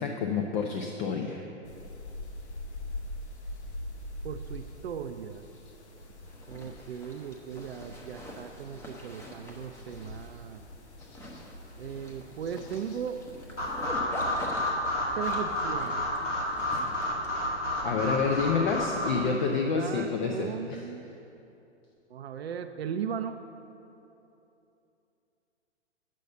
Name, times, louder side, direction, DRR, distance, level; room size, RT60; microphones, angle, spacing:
voice 1, 0.0-1.4 17.8-20.3 20.7-20.8, left 5 dB, 40° left, 2 dB, 0.7 m, -28 dB
sound 1, 1.6-13.9, left 1 dB, 70° left, 1.3 m, -44 dB
voice 2, 4.2-5.4 6.5-10.6 11.8-13.2 15.2-16.0 17.8-18.3 19.2-21.1 22.1-23.4, right 8 dB, 60° right, 8 dB, 0.5 m, -37 dB
Zipper (clothing), 6.2-18.7, left 1 dB, 5° left, 0.8 m, -45 dB
sound 2, 13.6-19.1, left 1 dB, 85° left, 2.3 m, -30 dB
8.4 x 5.4 x 6.7 m, 2.9 s
figure-of-eight pair, 120°, 35 cm